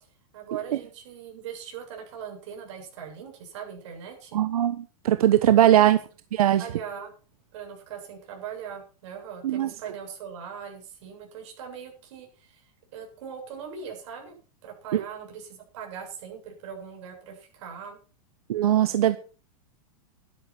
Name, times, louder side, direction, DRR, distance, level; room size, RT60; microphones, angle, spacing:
voice 1, 0.3-4.4 5.6-5.7 6.6-7.1 7.5-12.6 12.9-14.3 14.6-18.0, right 7 dB, 55° right, 2 dB, 7.9 m, -40 dB
voice 2, 4.3-6.0 6.3-6.6 9.4-9.7 14.9-15.0 18.5-19.2, right 12 dB, 85° right, 11 dB, 1.2 m, -20 dB
12.5 x 12.0 x 6.2 m, 0.38 s
supercardioid pair, 170°, 18 cm